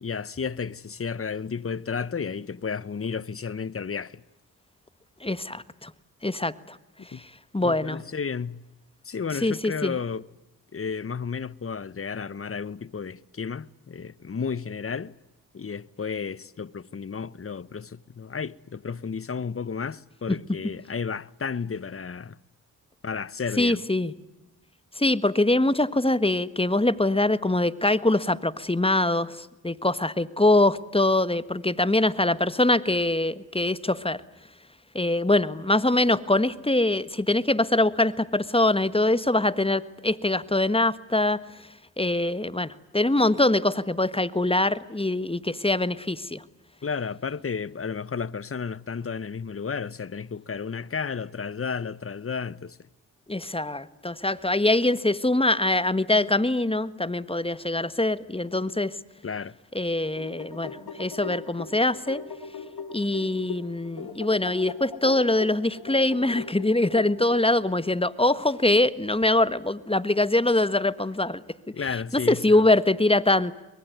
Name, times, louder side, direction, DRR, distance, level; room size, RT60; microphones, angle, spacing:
voice 1, 0.0-4.2 7.0-7.3 7.6-8.6 9.0-10.2 10.7-15.2 15.5-22.4 23.0-23.8 46.8-52.9 59.2-59.6 71.7-72.7, left 6 dB, 35° left, 1.0 m, -32 dB
voice 2, 5.2-5.9 6.2-6.8 7.5-8.0 9.4-10.0 23.6-24.1 25.0-34.2 34.9-41.4 42.0-46.4 53.3-58.9 59.7-62.2 62.9-71.4 72.1-73.5, left 2 dB, 15° left, 1.5 m, -23 dB
sound 1, 59.9-67.5, left 5 dB, 75° left, 4.0 m, -39 dB
24.5 x 22.0 x 9.5 m
supercardioid pair, 40°, 38 cm